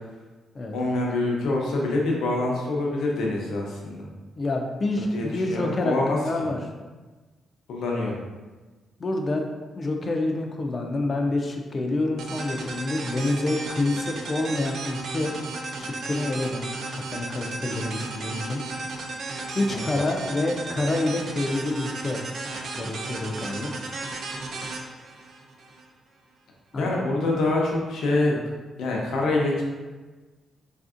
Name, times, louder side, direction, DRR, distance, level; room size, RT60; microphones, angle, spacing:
voice 1, 0.7-4.1 4.9-6.5 7.7-8.2 19.7-20.0 26.8-28.4 28.8-29.6, left 2 dB, 75° left, -2 dB, 0.6 m, -25 dB
voice 2, 4.4-6.6 9.0-9.5 9.8-15.3 15.8-16.7 16.9-18.6 19.5-22.2 22.5-23.7 26.7-26.9, left 2 dB, 25° left, 3 dB, 0.3 m, -27 dB
sound 1, 12.2-25.8, right 3 dB, 55° right, 0.4 m, -34 dB
3.3 x 2.5 x 2.4 m, 1.3 s
wide cardioid pair, 165°, 0 cm